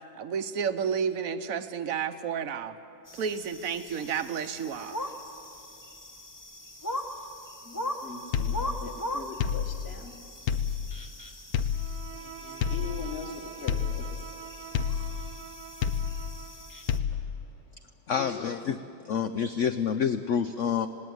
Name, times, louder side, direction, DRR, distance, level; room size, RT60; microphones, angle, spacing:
voice 1, 0.2-2.7 3.1-5.0, right 7 dB, 60° right, 10 dB, 1.0 m, -31 dB
sound 1, 3.1-17.0, left 1 dB, 15° left, 0.7 m, -40 dB
voice 2, 7.6-10.2 12.1-14.3 18.1-18.5, left 5 dB, 35° left, 3 dB, 1.8 m, -41 dB
sound 2, 8.3-9.1 9.4-10.1 10.5-11.2 11.5-12.2 12.6-13.3 13.7-14.4 14.7-15.4 15.8-16.5 16.9-17.5, left 7 dB, 65° left, 1.1 m, -30 dB
Bowed string instrument, 11.7-16.9, right 8 dB, 85° right, 2.0 m, -45 dB
voice 3, 18.1-18.8 19.0-20.9, left 7 dB, 85° left, 10 dB, 0.6 m, -28 dB
19.0 x 17.5 x 9.4 m, 2.7 s
omnidirectional pair, 2.0 m